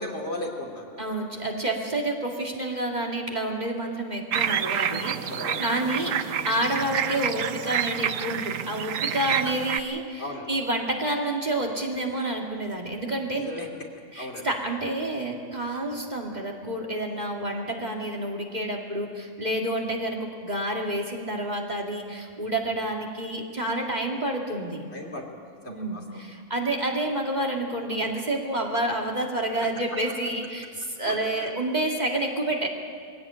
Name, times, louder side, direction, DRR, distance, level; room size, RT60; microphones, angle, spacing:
voice 1, 0.0-1.0 5.3-5.9 10.2-10.5 13.3-13.7 14.1-14.5 24.9-25.3 25.6-26.0 31.0-31.5, left 1 dB, 55° left, 0 dB, 3.0 m, -36 dB
voice 2, 1.0-13.5 14.1-24.8 25.7-32.7, right 1 dB, 35° right, 0 dB, 2.5 m, -29 dB
sound 1, 4.3-9.8, right 9 dB, 80° right, 1.1 m, -28 dB
22.5 x 16.5 x 8.8 m, 2.3 s
omnidirectional pair, 1.3 m